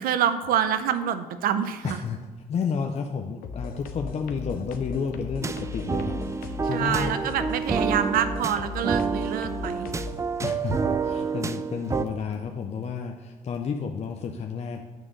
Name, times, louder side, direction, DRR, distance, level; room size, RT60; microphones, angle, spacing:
voice 1, 0.0-2.0 6.7-9.9, right 9 dB, 85° right, 11 dB, 0.6 m, -26 dB
voice 2, 1.8-2.2 2.5-7.2 10.4-14.8, left 6 dB, 45° left, 3 dB, 0.6 m, -31 dB
sound 1, 3.4-10.2, left 4 dB, 85° left, 0.7 m, -37 dB
sound 2, 5.4-12.1, right 5 dB, 20° right, 0.4 m, -29 dB
9.1 x 3.7 x 6.6 m, 1.3 s
cardioid pair, 100°, 15 cm